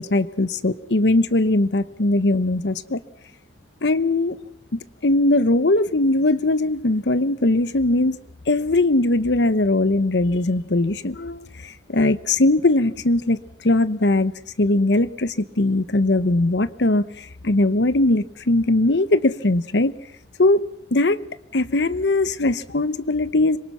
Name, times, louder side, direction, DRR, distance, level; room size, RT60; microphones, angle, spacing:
voice 1, 0.0-3.0 3.8-4.4 4.7-8.2 8.5-14.3 14.6-19.9 20.4-20.6 20.9-21.2 21.5-23.6, left 2 dB, 75° left, 1.0 m, -20 dB
25.5 x 23.0 x 6.1 m
head